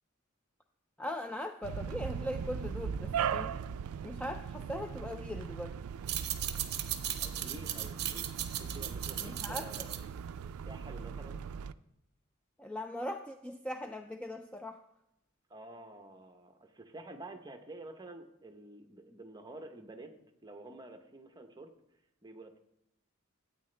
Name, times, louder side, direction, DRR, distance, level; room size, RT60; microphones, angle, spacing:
voice 1, 1.0-3.5 4.0-5.8 9.2-9.9 12.6-14.8, left 1 dB, 5° left, 5 dB, 0.3 m, -40 dB
sound 1, 1.6-11.7, right 7 dB, 85° right, 0.3 m, -39 dB
sound 2, 5.9-11.1, right 11 dB, 50° right, 0.7 m, -38 dB
voice 2, 7.2-8.3 8.6-10.0 10.4-11.4 15.5-20.1 20.4-21.7 22.2-22.6, right 2 dB, 20° right, 6 dB, 0.8 m, -49 dB
13.0 x 8.5 x 3.3 m, 0.81 s
head